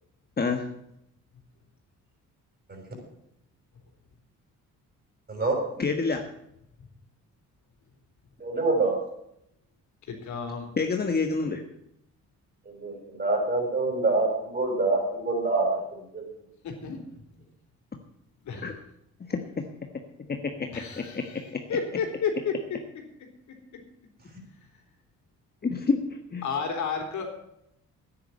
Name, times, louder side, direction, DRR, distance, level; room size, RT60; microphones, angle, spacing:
voice 1, 5.8-6.2 10.8-11.6 18.6-18.7 19.3-19.6 20.2-20.5 21.0-21.6 25.6-26.0 26.3-26.4, left 4 dB, 30° left, 4 dB, 1.5 m, -28 dB
voice 2, 8.4-8.9 12.6-15.8 16.1-16.2, right 3 dB, 30° right, 2 dB, 6.4 m, -26 dB
voice 3, 10.1-10.7 16.6-17.0 18.4-18.6 20.7-22.5 26.4-27.3, left 6 dB, 70° left, 3 dB, 3.5 m, -31 dB
10.0 x 10.0 x 8.7 m, 0.79 s
cardioid pair, 90°, 30 cm